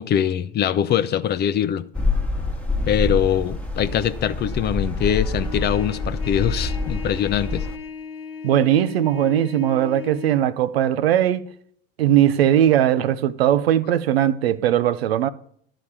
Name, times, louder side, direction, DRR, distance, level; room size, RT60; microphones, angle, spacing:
voice 1, 0.0-1.9 2.9-7.7, left 9 dB, 35° left, 0.6 m, -23 dB
sound 1, 1.9-7.8, left 3 dB, 5° left, 1.3 m, -26 dB
Trumpet, 5.4-10.4, left 6 dB, 75° left, 1.3 m, -37 dB
voice 2, 8.4-11.4 12.0-15.3, right 11 dB, 80° right, 0.7 m, -19 dB
12.0 x 5.0 x 7.2 m
hypercardioid pair, 85°, 30 cm